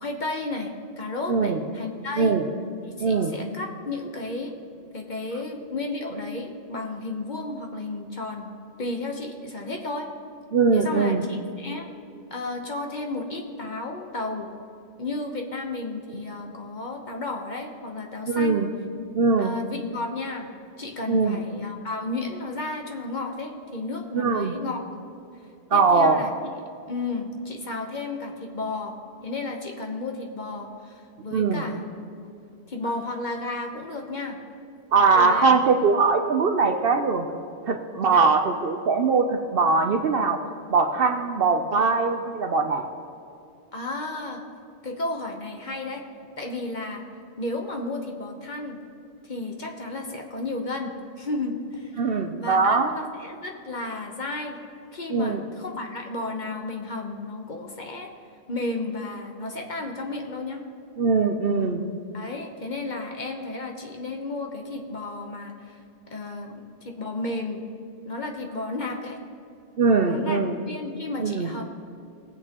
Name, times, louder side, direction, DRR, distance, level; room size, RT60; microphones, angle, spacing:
voice 1, 0.0-2.4 2.8-4.5 4.9-8.5 8.8-10.1 10.7-11.9 12.3-14.5 15.0-18.6 19.4-20.5 20.8-24.9 25.7-26.3 26.9-29.0 29.2-31.9 32.2-32.3 32.7-34.4 35.1-35.5 38.1-38.3 43.7-44.4 44.8-46.0 46.4-47.0 47.4-48.8 49.2-52.1 52.4-54.6 54.9-58.1 58.5-60.6 62.1-65.8 66.1-66.5 66.8-67.6 68.0-69.2 70.0-70.4 70.7-71.6, left 2 dB, 40° left, 2 dB, 1.0 m, -33 dB
voice 2, 1.3-1.6 2.2-2.5 3.0-3.3 10.5-11.2 18.3-18.7 19.1-19.6 21.1-21.4 24.1-24.5 25.7-26.2 31.3-31.6 34.9-37.3 37.6-40.4 40.7-42.9 52.0-52.9 55.1-55.4 61.0-61.8 69.8-70.6 71.2-71.5, right 4 dB, 60° right, 5 dB, 0.8 m, -21 dB
19.5 x 8.0 x 2.9 m, 2.6 s
omnidirectional pair, 1.3 m